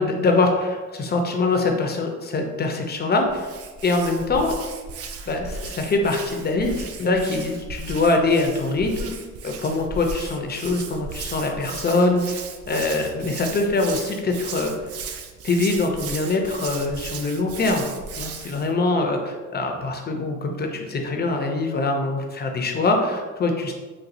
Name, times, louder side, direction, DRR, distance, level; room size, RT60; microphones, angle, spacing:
voice 1, 0.0-3.5 3.8-4.5 5.3-9.1 9.4-14.7 15.4-17.9 18.2-23.7, left 3 dB, 35° left, 3 dB, 0.6 m, -23 dB
Hands, 3.3-18.7, right 4 dB, 55° right, 0.4 m, -36 dB
4.1 x 2.3 x 2.6 m, 1.3 s
cardioid pair, 90°, 30 cm